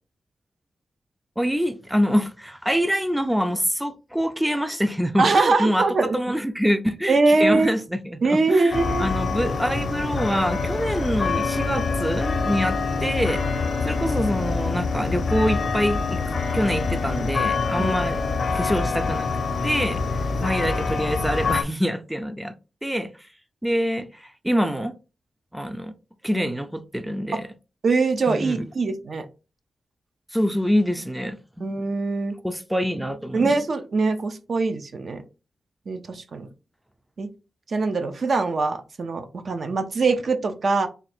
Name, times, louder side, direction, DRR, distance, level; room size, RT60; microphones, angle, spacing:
voice 1, 1.4-5.9 6.1-13.4 13.8-16.2 16.5-18.2 18.5-19.3 19.6-20.0 20.4-22.5 22.8-23.1 23.6-25.0 25.5-25.9 26.2-27.5 28.3-28.7 30.3-31.7 32.4-33.5, equal, 5° right, 0.4 m, -25 dB
voice 2, 5.2-6.2 7.1-7.7 8.2-9.0 17.8-18.0 26.4-26.5 27.8-29.2 31.6-32.4 33.3-35.2 35.9-36.5 37.2-37.3 37.7-40.9, right 3 dB, 55° right, 0.6 m, -22 dB
sound 1, 8.7-21.6, left 4 dB, 60° left, 0.6 m, -25 dB
3.7 x 2.3 x 4.2 m
wide cardioid pair, 100°, 0 cm